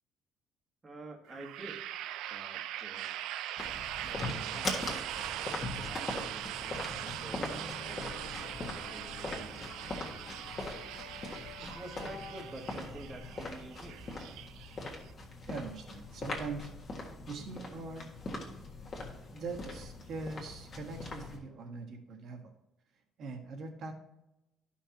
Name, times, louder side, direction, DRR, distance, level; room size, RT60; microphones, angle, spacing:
voice 1, 0.8-1.8 2.3-3.1 4.0-4.9 5.3-9.7 11.6-14.0, right 2 dB, 20° right, 2 dB, 1.3 m, -49 dB
sound 1, 1.3-15.1, right 12 dB, 85° right, 0.4 m, -41 dB
sound 2, 3.6-21.4, left 2 dB, 30° left, 1.6 m, -41 dB
sound 3, 6.7-13.7, left 5 dB, 85° left, 1.2 m, -52 dB
voice 2, 15.5-16.7 17.3-18.1 19.3-22.5 23.2-23.9, right 3 dB, 50° right, 3 dB, 1.3 m, -42 dB
12.0 x 5.7 x 2.9 m, 0.94 s
cardioid pair, 165°, 0 cm